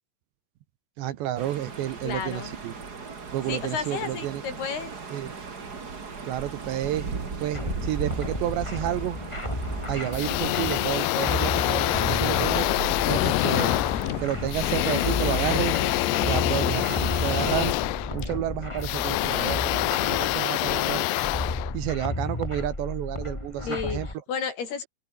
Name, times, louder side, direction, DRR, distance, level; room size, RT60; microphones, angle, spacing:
voice 1, 1.0-2.7 3.3-4.4 5.1-5.3 6.2-7.1 7.4-9.2 9.9-12.7 13.1-13.7 14.2-15.8 16.3-17.8 18.1-21.1 21.7-24.1, right 13 dB, 70° right, 3.3 m, -30 dB
sound 1, 1.4-17.7, right 4 dB, 30° right, 1.9 m, -38 dB
voice 2, 2.0-2.5 3.5-4.9 12.0-12.9 23.6-24.9, left 6 dB, 55° left, 5.8 m, -33 dB
sound 2, 7.5-24.1, left 2 dB, 20° left, 0.7 m, -33 dB
sound 3, 10.1-22.3, left 20 dB, 90° left, 2.5 m, -26 dB
open air
omnidirectional pair, 5.6 m